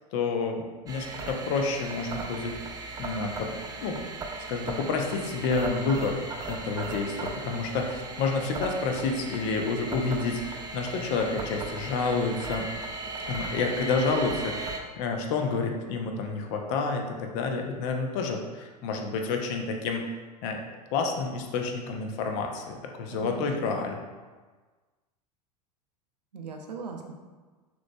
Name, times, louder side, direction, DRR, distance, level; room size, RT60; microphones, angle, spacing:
voice 1, 0.1-2.6 3.0-3.5 3.8-4.0 4.5-12.7 13.3-20.1 20.4-20.6 20.9-24.0, left 4 dB, 50° left, 3 dB, 0.7 m, -29 dB
sound 1, 0.9-14.8, right 3 dB, 15° right, 0.5 m, -37 dB
voice 2, 23.1-23.8 26.3-27.1, right 4 dB, 80° right, 3 dB, 0.6 m, -39 dB
6.1 x 3.0 x 2.2 m, 1.3 s
figure-of-eight pair, 85°, 21 cm